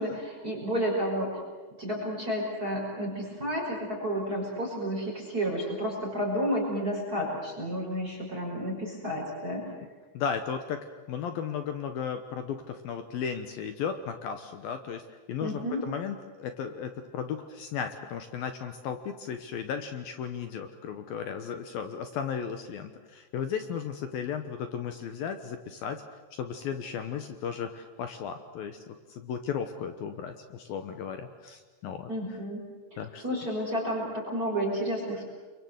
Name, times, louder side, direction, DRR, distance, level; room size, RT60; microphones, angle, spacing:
voice 1, 0.0-1.4 1.8-9.7 15.4-15.8 32.1-32.6 32.9-35.3, equal, 20° right, -1 dB, 5.5 m, -31 dB
voice 2, 10.1-10.8 11.1-26.0 26.3-32.1 33.0-33.4, left 7 dB, 70° left, 8 dB, 2.4 m, -35 dB
29.5 x 24.5 x 7.9 m, 1.3 s
omnidirectional pair, 5.5 m